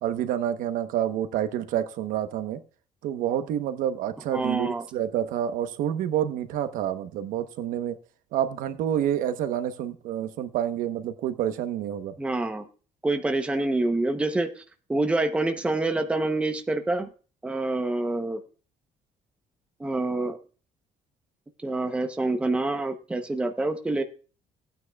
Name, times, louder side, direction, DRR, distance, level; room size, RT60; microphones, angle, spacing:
voice 1, 0.0-2.6 3.0-8.0 8.3-12.1, right 10 dB, 85° right, 9 dB, 1.0 m, -28 dB
voice 2, 4.3-4.8 12.2-12.7 13.0-14.5 14.9-17.1 17.4-18.4 19.8-20.4 21.6-24.0, right 2 dB, 10° right, 6 dB, 0.8 m, -26 dB
17.5 x 9.2 x 2.3 m, 0.37 s
cardioid pair, 175°, 14 cm